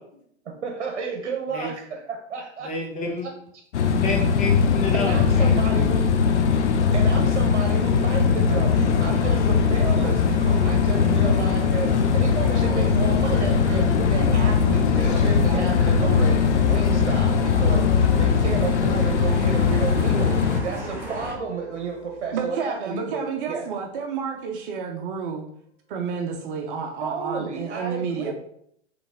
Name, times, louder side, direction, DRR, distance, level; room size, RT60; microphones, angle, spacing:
voice 1, 0.4-2.7 3.2-3.3 4.9-6.1 6.9-17.9 18.2-23.7 27.0-28.3, right 4 dB, 75° right, 2 dB, 0.9 m, -32 dB
voice 2, 2.6-3.3 4.0-5.7, left 2 dB, 20° left, 0 dB, 1.0 m, -30 dB
sound 1, 3.7-20.6, left 6 dB, 85° left, 0.6 m, -20 dB
sound 2, 9.3-21.3, equal, 5° right, 0.9 m, -36 dB
sound 3, 12.4-22.2, left 6 dB, 65° left, 1.0 m, -31 dB
voice 3, 22.3-25.5 25.9-28.3, right 6 dB, 50° right, 3 dB, 0.7 m, -30 dB
4.0 x 3.3 x 3.6 m, 0.69 s
hypercardioid pair, 125°, 34 cm